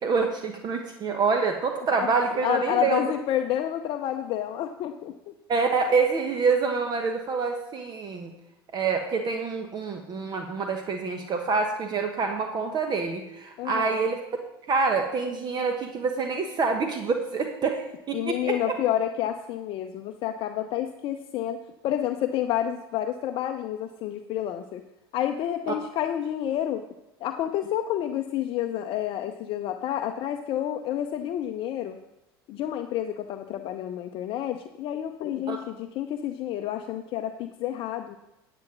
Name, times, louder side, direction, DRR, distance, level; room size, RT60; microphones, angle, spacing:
voice 1, 0.0-3.0 5.5-8.3 8.7-14.2 14.7-18.6 35.5-35.6, right 4 dB, 35° right, 5 dB, 1.1 m, -26 dB
voice 2, 2.0-5.3 13.6-14.0 18.1-21.6 21.8-24.8 25.1-26.8 27.2-32.0 32.5-38.2, left 11 dB, 45° left, 6 dB, 0.6 m, -29 dB
10.5 x 7.9 x 6.0 m, 0.94 s
figure-of-eight pair, 75°, 13 cm